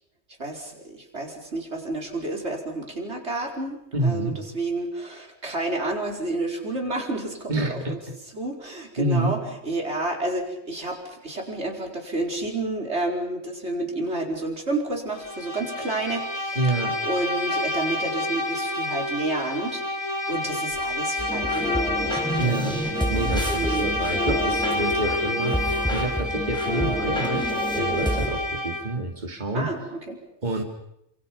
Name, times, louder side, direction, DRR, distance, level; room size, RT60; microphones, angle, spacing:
voice 1, 0.4-8.0 8.3-16.6 17.0-22.8 23.1-24.0 29.5-30.2, right 2 dB, 80° right, 1 dB, 5.1 m, -30 dB
voice 2, 3.9-4.4 7.5-8.0 9.0-9.3 16.5-17.0 22.4-22.8 23.1-27.4 27.7-29.7 30.4-30.6, right 2 dB, 40° right, 2 dB, 2.9 m, -27 dB
Bowed string instrument, 15.1-29.0, left 1 dB, 30° left, 1.9 m, -29 dB
sound 1, 21.2-28.3, equal, 5° left, 4.9 m, -28 dB
29.5 x 27.0 x 5.4 m, 0.80 s
omnidirectional pair, 1.1 m